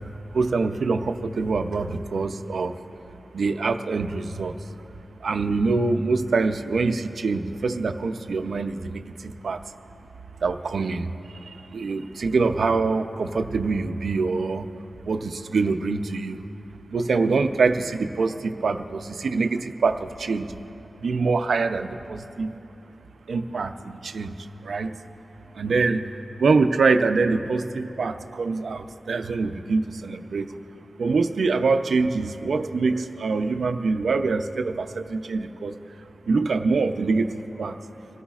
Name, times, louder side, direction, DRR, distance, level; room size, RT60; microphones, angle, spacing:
voice 1, 0.3-2.7 3.3-4.5 5.2-9.0 9.4-9.6 10.4-11.1 11.7-14.6 15.1-16.4 16.9-20.5 21.0-22.5 23.3-24.3 24.7-24.9 25.6-26.0 26.4-30.5 31.0-35.7 36.3-37.3 37.6-37.8, right 4 dB, 85° right, 8 dB, 0.5 m, -24 dB
24.5 x 14.0 x 2.4 m, 3.0 s
wide cardioid pair, 70°, 0 cm